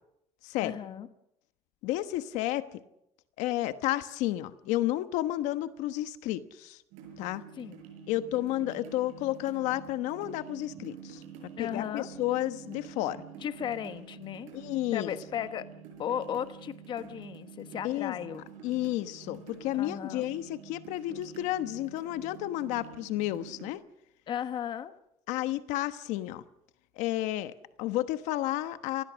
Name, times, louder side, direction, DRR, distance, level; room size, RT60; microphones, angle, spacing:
voice 1, 0.6-1.1 7.6-7.8 11.6-12.1 13.4-14.5 14.9-15.7 16.0-18.4 19.3-19.4 19.7-20.3 24.3-24.9, left 9 dB, 40° left, 11 dB, 1.2 m, -35 dB
voice 2, 1.8-2.7 3.4-6.8 7.2-7.4 8.1-11.2 11.6-13.2 14.5-15.1 17.8-18.1 18.6-23.8 25.3-26.4 27.0-29.0, left 15 dB, 85° left, 12 dB, 1.2 m, -31 dB
sound 1, 6.9-23.7, right 7 dB, 90° right, 7.5 m, -48 dB
27.5 x 20.0 x 6.3 m, 0.81 s
cardioid pair, 155°, 12 cm